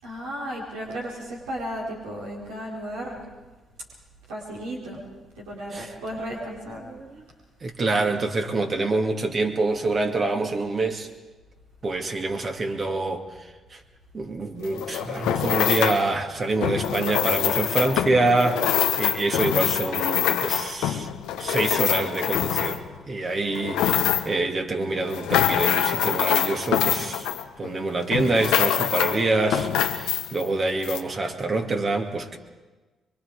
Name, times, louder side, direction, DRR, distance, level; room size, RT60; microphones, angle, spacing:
voice 1, 0.0-3.2 4.3-5.0 5.3-6.8, equal, 90° right, -5 dB, 4.2 m, -34 dB
voice 2, 6.8-7.2 7.6-11.1 11.8-13.3 13.7-13.8 14.1-21.1 21.4-27.3 27.6-32.4, right 2 dB, 45° right, 4 dB, 2.4 m, -26 dB
sound 1, 14.6-16.1 16.6-23.0 23.4-24.4 24.9-27.8 28.1-29.2 29.5-30.5 30.8-31.0, left 10 dB, 80° left, 1.1 m, -25 dB
24.0 x 23.5 x 5.0 m, 1.2 s
supercardioid pair, 55°, 0 cm